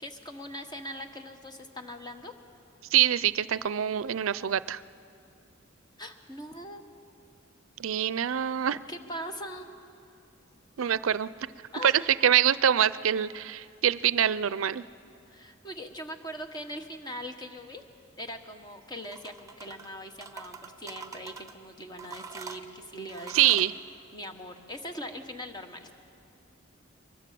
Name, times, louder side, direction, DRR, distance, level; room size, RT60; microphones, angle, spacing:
voice 1, 0.0-2.3 6.0-6.8 8.6-9.7 11.7-12.1 13.6-13.8 15.3-17.8 18.2-23.6 24.1-25.9, equal, 20° left, 6 dB, 1.3 m, -41 dB
voice 2, 2.9-4.8 7.8-8.8 10.8-11.3 11.8-14.8 23.3-23.7, right 10 dB, 80° right, 17 dB, 0.5 m, -25 dB
sound 1, 19.0-19.9 20.2-21.5 22.0-23.7, right 5 dB, 15° right, 1.0 m, -44 dB
23.5 x 21.0 x 7.6 m, 2.5 s
head